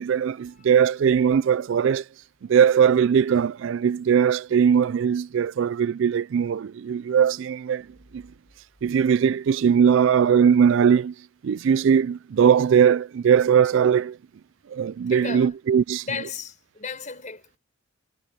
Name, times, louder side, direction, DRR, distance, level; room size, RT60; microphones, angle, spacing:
voice 1, 0.0-2.1 2.5-7.9 8.1-8.2 8.8-14.2 14.7-16.1, right 7 dB, 60° right, 0.3 m, -20 dB
voice 2, 15.1-15.5 16.0-17.4, left 5 dB, 35° left, 5.9 m, -34 dB
head